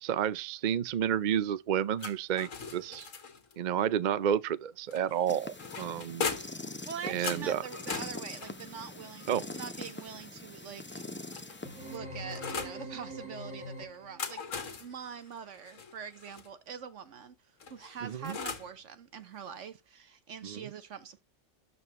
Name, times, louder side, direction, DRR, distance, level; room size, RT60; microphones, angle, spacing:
voice 1, 0.0-3.1 3.6-6.3 7.1-7.6 9.3-9.4 18.0-18.4 20.4-20.6, right 9 dB, 55° right, 0.5 m, -30 dB
sound 1, 2.0-3.6 4.9-6.7 7.2-10.2 11.0-12.8 13.9-16.5 17.6-18.8, left 5 dB, 80° left, 1.7 m, -40 dB
sound 2, 5.3-12.0, left 2 dB, 15° left, 0.5 m, -43 dB
voice 2, 6.8-11.1 11.7-21.2, right 7 dB, 70° right, 1.2 m, -44 dB
sound 3, 11.6-14.3, equal, 5° right, 2.7 m, -43 dB
12.5 x 4.2 x 3.0 m
omnidirectional pair, 1.3 m